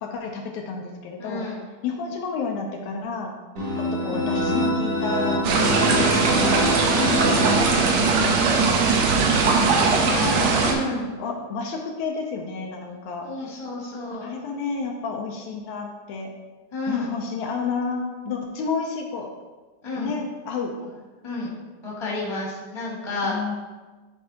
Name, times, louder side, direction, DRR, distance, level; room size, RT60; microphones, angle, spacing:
voice 1, 0.0-1.5 1.8-3.3 3.8-6.6 7.4-10.7 11.2-13.6 14.1-16.3 16.9-19.3 19.9-20.8 23.2-23.6, left 4 dB, 75° left, 1 dB, 1.9 m, -31 dB
voice 2, 1.2-1.6 4.0-4.2 5.9-6.2 6.9-7.5 10.6-11.1 13.2-14.3 16.7-17.1 19.8-20.1 20.8-20.9 21.2-21.5 21.8-23.3, left 2 dB, 15° left, -5 dB, 1.3 m, -31 dB
sound 1, 3.6-8.3, equal, 50° right, 2.8 m, -25 dB
sound 2, 5.4-10.7, right 4 dB, 70° right, 1.9 m, -20 dB
11.5 x 4.5 x 2.8 m, 1.3 s
omnidirectional pair, 3.5 m